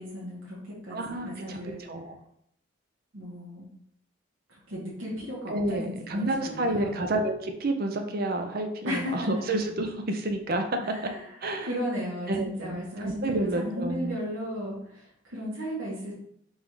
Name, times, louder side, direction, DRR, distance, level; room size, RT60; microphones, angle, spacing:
voice 1, 0.0-1.8 3.1-3.7 4.7-7.0 8.8-9.3 10.8-11.3 11.6-16.1, equal, 75° right, -6 dB, 1.2 m, -35 dB
voice 2, 0.9-1.6 1.9-2.2 5.5-10.8 11.4-11.7 12.3-14.2, right 1 dB, 50° right, 5 dB, 0.6 m, -30 dB
3.9 x 2.6 x 4.6 m, 0.71 s
head